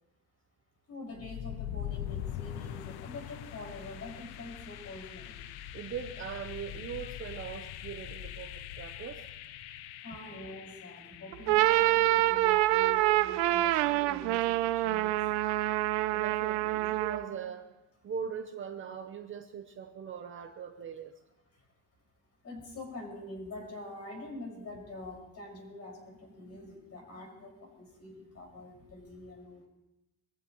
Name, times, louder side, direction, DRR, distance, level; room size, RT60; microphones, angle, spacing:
voice 1, 0.9-5.4 7.3-7.4 10.0-16.2 21.6-21.7 22.4-29.7, left 2 dB, 35° left, 0 dB, 5.4 m, -46 dB
sound 1, 1.1-13.0, left 11 dB, 65° left, 0.8 m, -43 dB
voice 2, 5.7-9.2 16.1-17.7 18.0-21.1, right 7 dB, 30° right, 6 dB, 0.8 m, -40 dB
sound 2, 11.3-17.3, right 17 dB, 80° right, 0.7 m, -26 dB
24.0 x 15.0 x 3.0 m, 0.94 s
cardioid pair, 155°, 41 cm